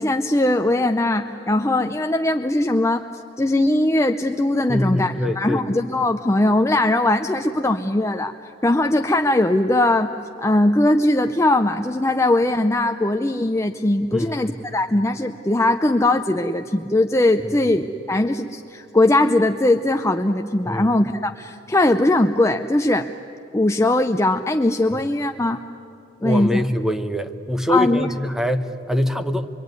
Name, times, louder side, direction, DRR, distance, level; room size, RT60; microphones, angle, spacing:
voice 1, 0.0-3.1 3.4-10.1 10.4-23.1 23.5-25.6 26.2-26.6 27.7-28.1, left 1 dB, 15° left, 6 dB, 0.6 m, -20 dB
voice 2, 4.7-5.6 14.1-14.5 20.7-20.9 24.9-25.0 26.2-29.5, left 1 dB, 5° right, 9 dB, 1.0 m, -24 dB
25.5 x 23.5 x 9.5 m, 2.7 s
head